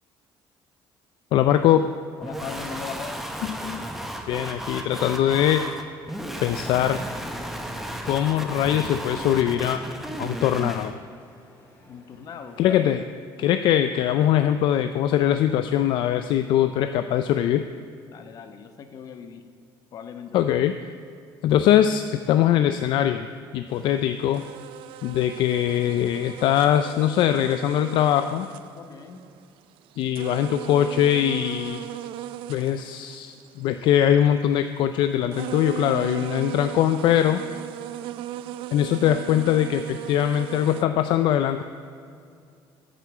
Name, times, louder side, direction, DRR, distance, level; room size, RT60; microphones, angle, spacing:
voice 1, 1.3-1.9 3.5-3.9 4.3-5.6 6.4-7.0 8.0-9.8 10.2-10.9 12.6-13.0 13.4-17.6 20.3-20.7 21.4-23.3 23.5-24.4 25.0-28.5 30.0-31.8 32.5-37.4 38.7-41.6, left 11 dB, 60° left, 9 dB, 0.4 m, -22 dB
voice 2, 2.2-3.3 11.9-12.9 18.1-19.5 19.9-20.5 28.7-29.2, left 7 dB, 45° left, 8 dB, 0.9 m, -39 dB
sound 1, 2.2-10.9, equal, 5° right, 0.8 m, -34 dB
sound 2, 6.6-12.9, equal, 20° left, 3.3 m, -51 dB
sound 3, 23.8-24.0 24.3-29.4 29.8-34.2 35.0-35.1 35.3-40.8, right 12 dB, 70° right, 0.4 m, -37 dB
9.3 x 8.1 x 7.3 m, 2.4 s
cardioid pair, 170°, 9 cm